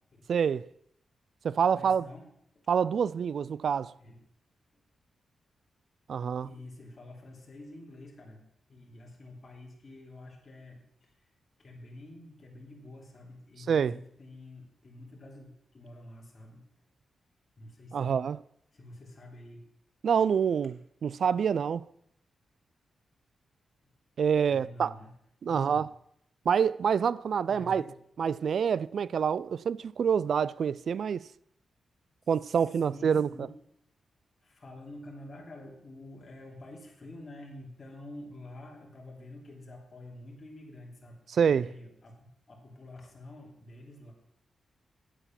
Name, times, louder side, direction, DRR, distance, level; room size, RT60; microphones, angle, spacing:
voice 1, 0.3-0.7 1.4-2.1 2.7-3.9 6.1-6.5 13.7-13.9 17.9-18.4 20.0-21.8 24.2-24.9 25.4-25.9 26.5-27.8 28.2-31.2 32.3-33.3 41.3-41.7, right 7 dB, 65° right, 0.3 m, -27 dB
voice 2, 1.7-2.3 4.0-4.2 6.4-8.4 8.7-11.2 11.6-16.6 17.6-18.2 18.7-19.6 24.5-25.1 25.5-25.8 27.5-28.0 32.6-33.5 34.4-41.2 41.4-42.1 42.5-44.1, left 1 dB, 40° left, 3.1 m, -48 dB
9.2 x 8.2 x 5.9 m
cardioid pair, 95°, 0 cm